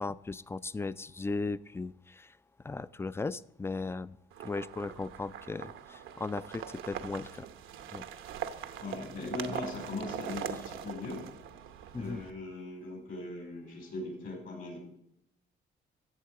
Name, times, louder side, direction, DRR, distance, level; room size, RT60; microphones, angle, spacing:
voice 1, 0.0-2.3 2.6-4.2 4.4-7.5 7.9-8.0 11.9-12.2, left 3 dB, 10° left, 18 dB, 0.3 m, -37 dB
sound 1, 4.3-12.3, right 8 dB, 85° right, 0.9 m, -42 dB
voice 2, 8.8-11.2 11.9-14.8, left 2 dB, 65° left, 0 dB, 4.5 m, -39 dB
14.0 x 7.8 x 4.8 m, 0.81 s
cardioid pair, 90°, 20 cm